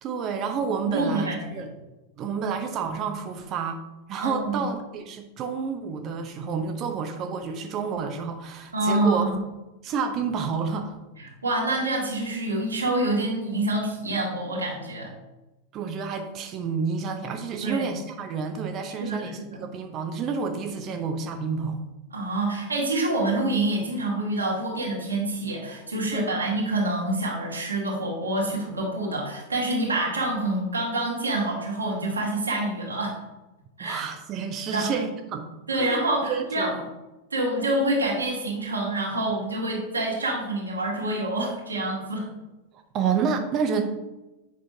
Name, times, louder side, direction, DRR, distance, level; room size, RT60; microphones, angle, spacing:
voice 1, 0.0-1.7 2.2-3.8 4.1-9.2 9.8-11.0 15.7-21.8 26.1-26.5 33.8-36.0 36.3-36.9 42.9-43.8, right 5 dB, 35° right, 5 dB, 0.7 m, -29 dB
voice 2, 0.9-1.6 4.2-4.7 8.7-9.4 11.2-15.1 17.6-17.9 19.0-19.7 22.1-33.2 33.8-34.0 34.7-34.9 35.7-36.7 37.3-42.3, right 2 dB, 80° right, -3 dB, 2.0 m, -27 dB
8.3 x 6.0 x 2.8 m, 1.0 s
figure-of-eight pair, 90°, 0 cm